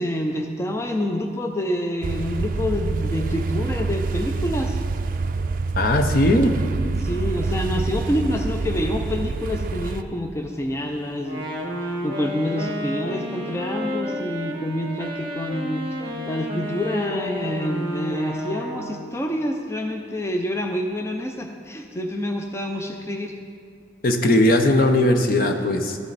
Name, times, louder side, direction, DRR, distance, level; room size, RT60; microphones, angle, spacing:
voice 1, 0.0-4.8 7.0-11.5 11.8-15.9 16.3-23.3, left 1 dB, 15° left, 3 dB, 0.5 m, -27 dB
sound 1, 2.0-10.0, right 3 dB, 50° right, 0.4 m, -26 dB
voice 2, 5.7-6.5 24.0-26.0, left 1 dB, 50° left, 5 dB, 0.8 m, -18 dB
Wind instrument woodwind instrument, 11.2-19.1, equal, 25° right, 1.3 m, -31 dB
14.0 x 7.5 x 4.1 m, 2.2 s
head